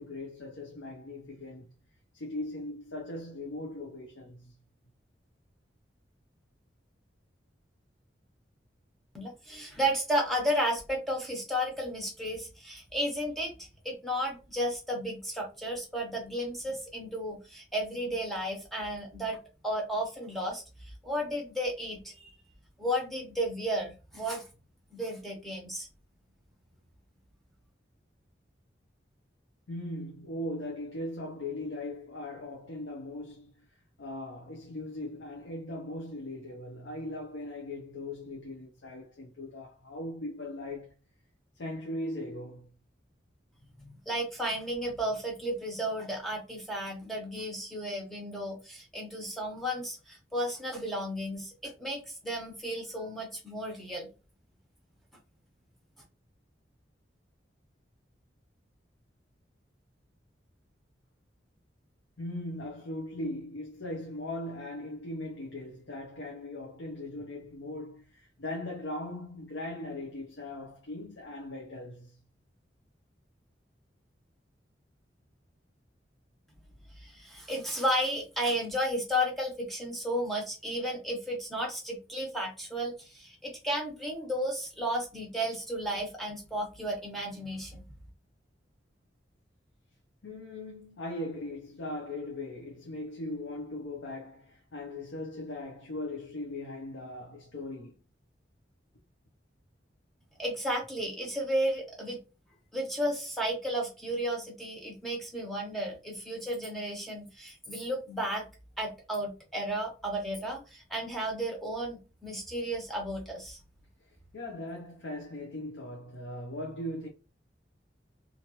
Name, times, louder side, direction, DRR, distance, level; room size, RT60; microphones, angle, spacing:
voice 1, 0.0-1.7 2.1-4.6 29.7-40.9 41.5-42.8 62.2-72.2 90.2-98.0 114.0-117.1, left 1 dB, 85° left, 0.7 m, -39 dB
voice 2, 9.1-19.4 19.6-20.6 21.0-22.3 22.8-24.4 24.9-25.9 43.8-54.1 77.0-87.9 100.4-102.2 102.7-108.4 108.8-113.6, equal, ahead, 0.9 m, -33 dB
2.9 x 2.5 x 2.9 m
head